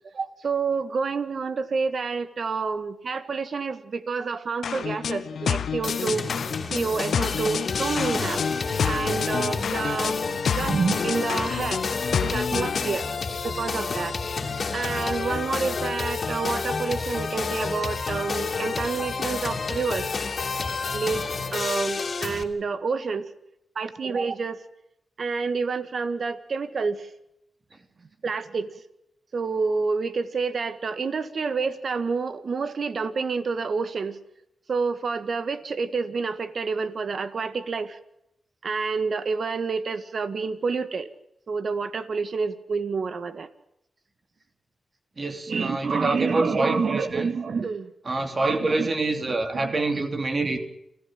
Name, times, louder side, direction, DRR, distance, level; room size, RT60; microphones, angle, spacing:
voice 1, 0.1-6.3 6.7-8.4 8.8-10.2 10.5-11.8 12.2-13.0 13.4-14.2 14.7-20.1 20.9-23.3 23.8-24.6 25.2-27.0 28.2-28.7 29.3-34.2 34.7-38.0 38.6-41.1 41.5-43.5 45.5-47.9 48.4-48.9 49.5-49.7, right 4 dB, 60° right, 12 dB, 1.8 m, -28 dB
sound 1, 4.6-13.0, left 7 dB, 75° left, 0.9 m, -29 dB
sound 2, 5.8-22.4, left 4 dB, 55° left, 2.8 m, -30 dB
voice 2, 45.2-47.3 48.1-50.6, right 2 dB, 45° right, 6 dB, 2.9 m, -26 dB
28.0 x 14.0 x 7.7 m, 0.83 s
cardioid pair, 55°, 0 cm